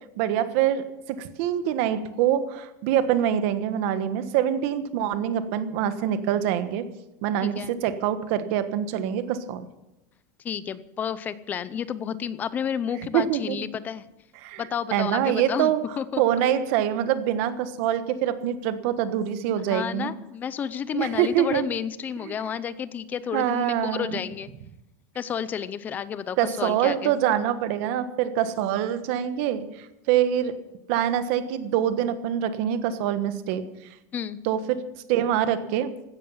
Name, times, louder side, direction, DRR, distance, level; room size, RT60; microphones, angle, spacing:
voice 1, 0.2-6.8 7.2-9.7 13.1-13.6 14.4-14.6 14.9-15.8 16.2-20.1 20.9-21.7 22.3-22.4 23.3-24.2 26.4-30.5 30.9-33.6 34.4-34.8 35.1-35.9, right 10 dB, 45° right, 11 dB, 1.4 m, -25 dB
voice 2, 7.4-7.7 10.4-14.0 14.6-16.2 19.6-24.5 25.1-27.1 34.1-34.4, left 8 dB, 20° left, 16 dB, 0.6 m, -31 dB
16.5 x 13.0 x 5.6 m, 0.93 s
supercardioid pair, 175°, 10 cm